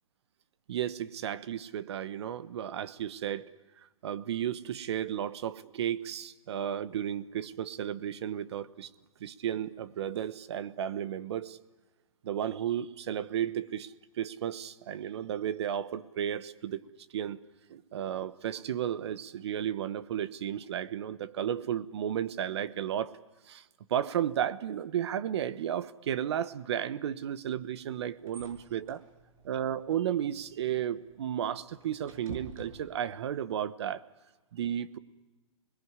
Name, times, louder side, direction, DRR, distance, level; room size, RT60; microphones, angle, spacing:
voice 1, 0.7-3.4 3.8-8.9 9.2-11.6 12.2-16.8 17.1-17.4 17.7-23.2 23.5-29.0 29.4-34.0 34.5-35.0, right 10 dB, 50° right, 15 dB, 1.2 m, -33 dB
sound 1, 27.6-33.3, right 3 dB, 85° right, 7.3 m, -51 dB
27.0 x 21.0 x 9.7 m, 1.2 s
hypercardioid pair, 160°, 17 cm